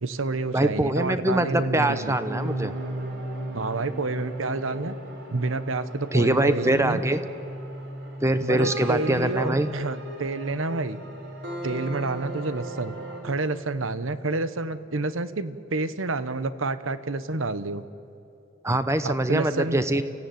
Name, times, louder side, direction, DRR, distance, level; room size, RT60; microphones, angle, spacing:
voice 1, 0.0-2.2 3.5-5.0 5.3-7.0 8.4-11.0 11.6-13.0 13.2-17.8 19.0-19.8, right 3 dB, 75° right, 13 dB, 1.1 m, -29 dB
voice 2, 0.5-2.7 6.1-7.2 8.2-9.7 18.6-20.0, right 1 dB, 15° right, 11 dB, 0.9 m, -23 dB
sound 1, 2.2-13.2, right 1 dB, 60° right, 4.6 m, -36 dB
29.5 x 15.5 x 9.3 m, 2.8 s
head